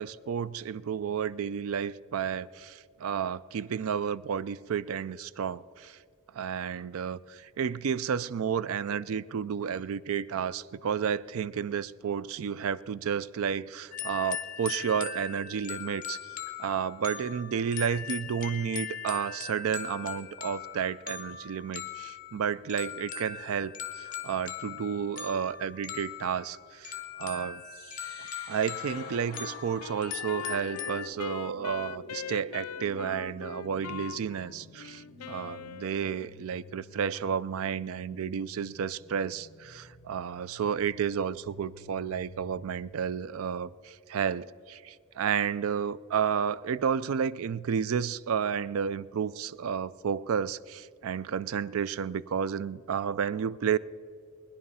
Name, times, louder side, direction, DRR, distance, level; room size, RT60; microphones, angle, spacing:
voice 1, 0.0-6.0 6.3-16.2 16.6-27.6 28.5-53.8, right 7 dB, 65° right, 0.4 m, -31 dB
sound 1, 13.9-31.1, left 8 dB, 35° left, 0.9 m, -40 dB
sound 2, 27.5-43.6, equal, 45° right, 3.6 m, -50 dB
Wind instrument woodwind instrument, 28.9-36.4, left 6 dB, 90° left, 0.5 m, -42 dB
20.5 x 10.5 x 5.5 m
head